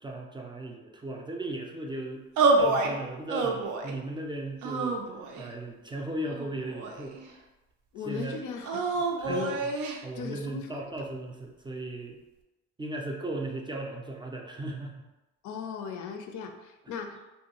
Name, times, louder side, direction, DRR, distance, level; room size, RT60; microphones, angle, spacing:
voice 1, 0.0-2.3 2.6-5.0 5.4-7.2 8.1-8.4 9.2-9.6 10.0-12.2 12.8-15.1, right 1 dB, 15° right, 0 dB, 0.3 m, -37 dB
sound 1, 2.4-2.9 3.3-4.0 4.6-5.5 6.3-7.3 8.6-10.0, right 3 dB, 80° right, 0.4 m, -27 dB
voice 2, 7.9-9.6 10.2-10.8 15.4-17.2, left 6 dB, 75° left, 4 dB, 0.5 m, -37 dB
2.5 x 2.2 x 2.9 m, 1.0 s
cardioid pair, 90°, 30 cm